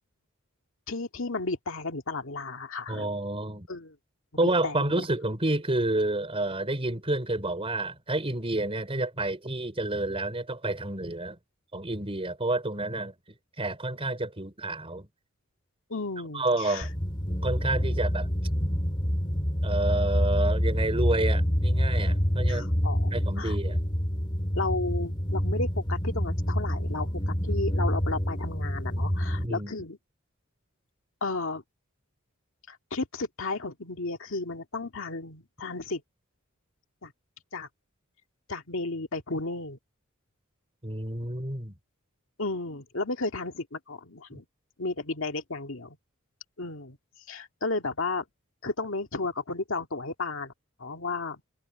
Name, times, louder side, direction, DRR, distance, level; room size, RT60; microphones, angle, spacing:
voice 1, 0.9-3.1 3.7-4.0 4.6-5.0 15.9-16.9 17.9-18.0 22.5-23.1 23.4-23.6 24.5-30.0 31.2-31.6 32.7-36.0 37.0-37.1 37.5-37.7 38.5-39.8 42.4-44.5 44.8-46.0 46.6-47.0 47.3-48.2 48.6-50.5 50.8-51.4, left 3 dB, 65° left, 2.0 m, -33 dB
voice 2, 2.9-3.7 4.4-11.4 11.7-13.1 13.6-15.1 16.3-16.9 17.4-18.3 19.6-22.7 23.1-23.8 29.4-29.7 40.8-41.7, right 2 dB, 25° right, 4.8 m, -29 dB
sound 1, 16.8-29.5, equal, 25° left, 2.9 m, -27 dB
head